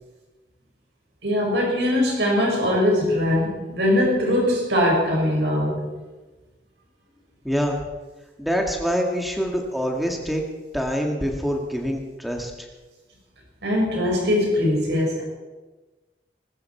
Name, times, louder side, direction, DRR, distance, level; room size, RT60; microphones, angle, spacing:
voice 1, 1.2-5.9 13.6-15.2, left 1 dB, 85° right, -1 dB, 5.4 m, -21 dB
voice 2, 7.4-7.8 8.4-10.4 10.7-12.5, equal, ahead, 1 dB, 2.0 m, -25 dB
20.0 x 14.0 x 4.6 m, 1.2 s
head